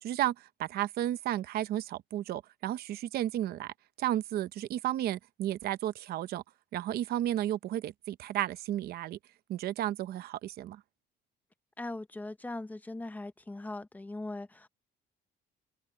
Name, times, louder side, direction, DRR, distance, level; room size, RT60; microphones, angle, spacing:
voice 1, 0.0-6.4 6.7-9.2 9.5-10.8, right 13 dB, 50° right, 0.7 m, -33 dB
voice 2, 11.8-14.7, left 2 dB, 10° left, 0.6 m, -40 dB
cardioid pair, 175°, 20 cm